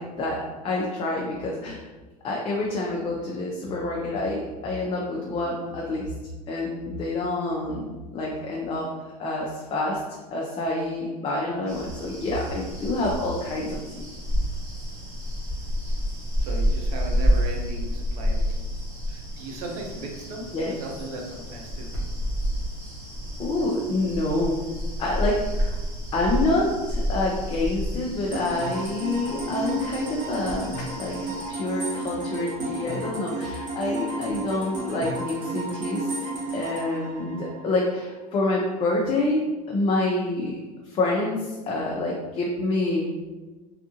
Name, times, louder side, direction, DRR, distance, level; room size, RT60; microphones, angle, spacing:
voice 1, 0.0-1.8 2.2-6.1 6.5-8.9 9.2-14.0 20.5-20.7 23.4-24.6 25.0-25.8 26.1-36.1 36.5-40.5 40.8-43.3, left 2 dB, 25° left, -2 dB, 0.5 m, -27 dB
sound 1, 11.7-31.5, equal, 15° right, 1.3 m, -30 dB
voice 2, 16.4-21.9, right 2 dB, 70° right, 0 dB, 0.8 m, -37 dB
sound 2, 28.3-38.0, right 2 dB, 40° right, 0.9 m, -33 dB
3.5 x 2.5 x 2.7 m, 1.3 s
supercardioid pair, 115°, 20 cm